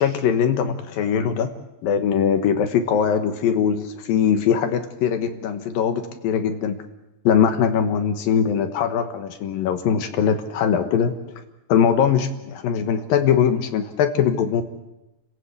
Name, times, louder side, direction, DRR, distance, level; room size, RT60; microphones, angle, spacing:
voice 1, 0.0-1.5 1.8-6.8 7.2-11.1 11.7-14.6, left 7 dB, 75° left, 8 dB, 3.0 m, -21 dB
29.5 x 16.0 x 8.3 m, 0.99 s
omnidirectional pair, 4.1 m